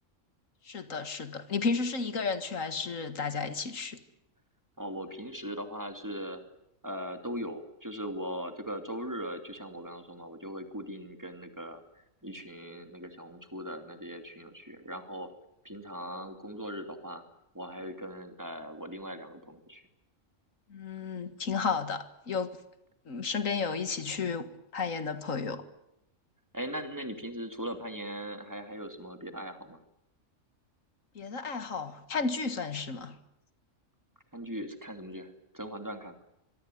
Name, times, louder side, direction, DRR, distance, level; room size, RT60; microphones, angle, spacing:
voice 1, 0.6-4.0 20.7-22.6 23.1-25.6 31.2-33.2, left 5 dB, 85° left, 10 dB, 2.1 m, -33 dB
voice 2, 4.8-6.4 6.8-11.8 12.2-15.3 15.6-17.2 17.5-19.8 26.5-29.8 34.3-36.1, equal, 15° right, 6 dB, 2.8 m, -39 dB
26.0 x 23.0 x 9.4 m, 0.82 s
omnidirectional pair, 1.3 m